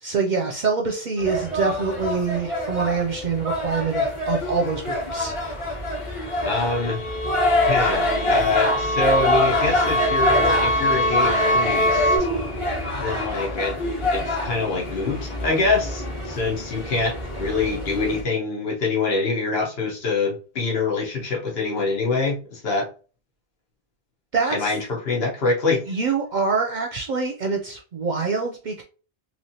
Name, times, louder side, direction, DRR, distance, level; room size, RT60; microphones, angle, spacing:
voice 1, 0.0-5.4 24.3-24.7 25.9-28.8, right 5 dB, 55° right, 2 dB, 0.6 m, -25 dB
sound 1, 1.2-18.2, left 1 dB, 30° left, 1.1 m, -26 dB
sound 2, 6.3-12.2, equal, 55° left, 1.0 m, -24 dB
voice 2, 6.4-7.0 7.6-12.1 12.9-13.8 14.1-22.8 24.5-25.8, left 3 dB, 75° left, -1 dB, 1.3 m, -25 dB
3.2 x 3.0 x 2.7 m, 0.36 s
omnidirectional pair, 1.0 m